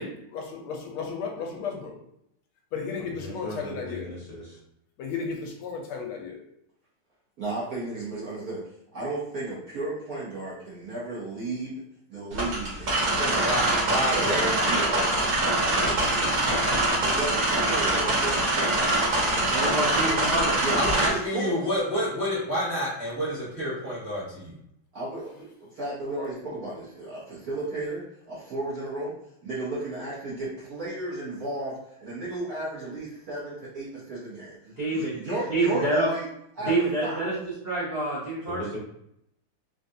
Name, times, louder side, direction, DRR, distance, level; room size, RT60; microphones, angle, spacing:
voice 1, 0.0-1.9 2.7-4.1 5.0-6.4, left 5 dB, 80° left, 1 dB, 1.5 m, -34 dB
voice 2, 3.0-4.6 38.5-38.8, left 1 dB, 10° left, -10 dB, 1.1 m, -38 dB
voice 3, 7.4-8.6 8.9-11.7 12.1-13.4 14.1-15.3 15.6-16.6 17.0-21.7 24.9-29.1 29.4-34.6 34.9-36.3 36.6-37.3, right 2 dB, 65° right, -8 dB, 0.9 m, -34 dB
sound 1, 12.3-21.1, right 1 dB, 50° right, 1.3 m, -24 dB
voice 4, 13.4-14.4 20.5-24.5, equal, 20° right, -10 dB, 0.3 m, -29 dB
voice 5, 19.5-20.5 34.8-35.2 35.5-36.1 36.6-38.7, right 2 dB, 85° right, -9 dB, 0.5 m, -27 dB
3.8 x 2.3 x 2.6 m, 0.75 s
omnidirectional pair, 2.4 m